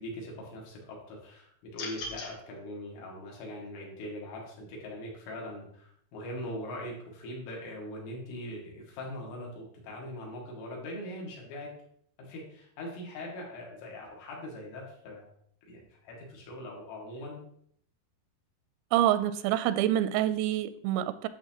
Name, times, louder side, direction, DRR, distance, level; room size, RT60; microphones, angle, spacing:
voice 1, 0.0-11.7 12.2-15.3 15.7-17.4, left 1 dB, 75° left, -2 dB, 4.5 m, -41 dB
sound 1, 1.7-2.3, left 2 dB, 55° left, 3.0 m, -38 dB
voice 2, 18.9-21.3, right 12 dB, 90° right, 13 dB, 3.2 m, -26 dB
11.0 x 7.2 x 2.9 m, 0.67 s
omnidirectional pair, 5.9 m